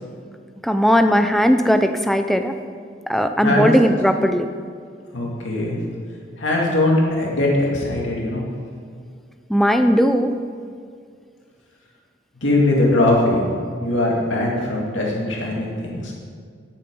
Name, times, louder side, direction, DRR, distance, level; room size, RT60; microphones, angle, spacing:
voice 1, 0.6-2.5 3.1-4.5 9.5-10.4, equal, ahead, 7 dB, 0.5 m, -17 dB
voice 2, 5.1-5.8 6.4-8.4 12.4-13.4 13.8-16.1, left 2 dB, 80° left, -3 dB, 2.5 m, -20 dB
10.5 x 8.7 x 5.5 m, 2.1 s
head